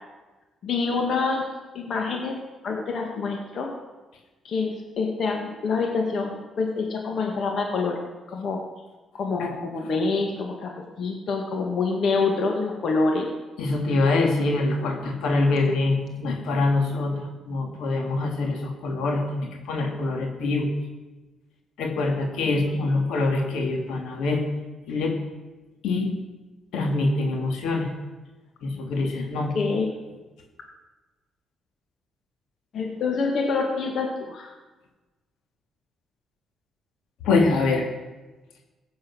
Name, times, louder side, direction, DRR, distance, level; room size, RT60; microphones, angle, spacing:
voice 1, 0.6-1.5 1.7-2.4 2.6-3.7 4.4-8.0 8.3-8.6 9.1-10.7 11.0-13.3 22.4-23.0 29.5-29.9 32.7-34.5, left 4 dB, 60° left, 1 dB, 2.0 m, -26 dB
voice 2, 13.6-20.7 21.8-24.4 24.9-25.2 25.8-26.1 26.7-27.9 28.6-29.5 37.2-37.9, left 3 dB, 85° left, 2 dB, 2.5 m, -24 dB
15.5 x 8.7 x 6.4 m, 1.2 s
cardioid pair, 90°, 0 cm